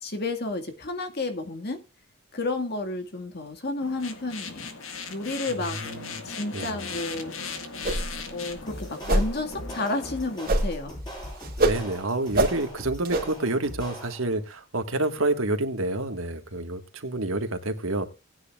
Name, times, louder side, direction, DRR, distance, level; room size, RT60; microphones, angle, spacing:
voice 1, 0.0-1.8 2.3-4.7 5.1-6.0 6.2-7.3 8.3-10.9, left 2 dB, 50° left, 1.9 m, -31 dB
sound 1, 3.8-10.4, left 5 dB, 75° left, 1.8 m, -38 dB
sound 2, 7.8-8.2 8.5-8.6 9.0-9.3 10.5-10.9 11.1-11.8 12.3-12.6 13.0-13.3, right 1 dB, 45° right, 2.3 m, -24 dB
sound 3, 8.7-14.4, equal, 20° left, 6.9 m, -40 dB
voice 2, 11.6-18.1, right 2 dB, 80° right, 1.7 m, -28 dB
18.5 x 9.7 x 2.4 m
head